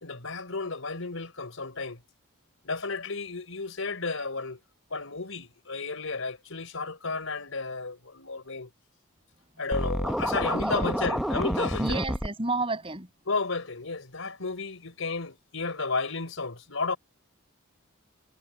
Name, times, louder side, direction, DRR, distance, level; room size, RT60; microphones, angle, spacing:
voice 1, 0.0-2.0 2.6-4.6 4.9-8.7 9.6-12.0 13.3-17.0, left 3 dB, 70° left, 4.1 m, -33 dB
Scratching (performance technique), 9.7-12.3, equal, ahead, 0.7 m, -28 dB
voice 2, 10.5-10.9 11.8-13.1, right 2 dB, 25° right, 6.7 m, -31 dB
head